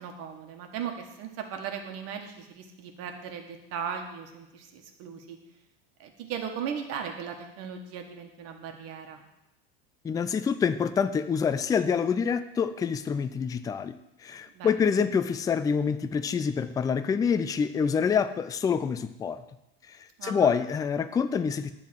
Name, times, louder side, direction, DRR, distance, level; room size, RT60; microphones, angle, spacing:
voice 1, 0.0-5.4 6.0-9.2 14.5-14.9 20.2-20.5, right 7 dB, 55° right, 4 dB, 1.5 m, -37 dB
voice 2, 10.0-13.9 14.2-19.4 19.9-21.7, left 6 dB, 10° left, 11 dB, 0.3 m, -26 dB
10.5 x 3.8 x 7.5 m, 0.90 s
supercardioid pair, 115°, 30 cm